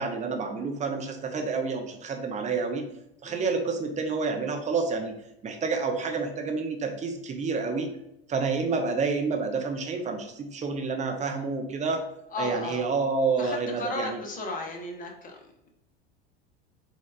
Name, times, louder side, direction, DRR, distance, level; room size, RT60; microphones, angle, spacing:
voice 1, 0.0-2.9 3.2-5.1 5.4-7.9 8.3-12.0 12.4-14.2, right 4 dB, 25° right, 4 dB, 0.6 m, -29 dB
voice 2, 12.3-12.8 13.4-15.7, left 3 dB, 25° left, 2 dB, 0.8 m, -35 dB
4.5 x 2.3 x 2.3 m, 0.83 s
hypercardioid pair, 85°, 31 cm